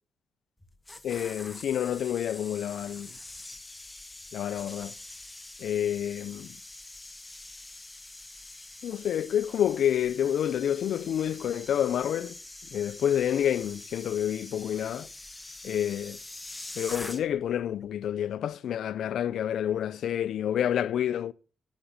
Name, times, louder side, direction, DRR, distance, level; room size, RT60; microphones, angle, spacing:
sound 1, 0.6-17.5 17.8-18.1, left 2 dB, 10° left, 1.4 m, -45 dB
voice 1, 1.0-3.1 4.3-4.9 5.6-6.6 8.8-12.3 12.7-15.1 15.6-16.2 16.8-21.3, left 10 dB, 75° left, 0.7 m, -28 dB
18.0 x 8.3 x 7.4 m
cardioid pair, 110°, 0 cm